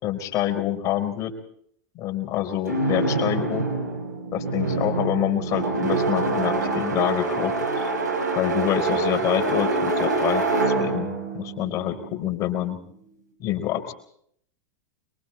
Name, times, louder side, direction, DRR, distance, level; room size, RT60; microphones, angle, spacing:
voice 1, 0.0-1.3 1.9-3.7 4.3-7.8 8.4-12.8 13.4-13.9, left 12 dB, 35° left, 6 dB, 4.1 m, -27 dB
sound 1, 2.7-12.6, right 3 dB, 80° right, 5.8 m, -26 dB
26.5 x 23.0 x 4.3 m, 0.66 s
figure-of-eight pair, 90°, 9 cm